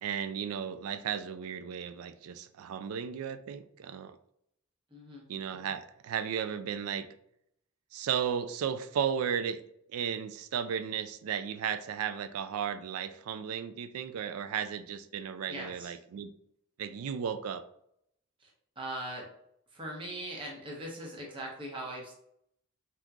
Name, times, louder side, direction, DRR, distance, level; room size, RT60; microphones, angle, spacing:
voice 1, 0.0-4.2 5.3-7.1 7.9-16.3 16.8-17.6, right 8 dB, 80° right, 11 dB, 0.3 m, -35 dB
voice 2, 4.9-5.2 15.5-15.9 18.4-18.5 18.8-19.3 19.7-22.1, right 1 dB, 25° right, -2 dB, 0.8 m, -40 dB
3.6 x 2.8 x 2.3 m, 0.73 s
head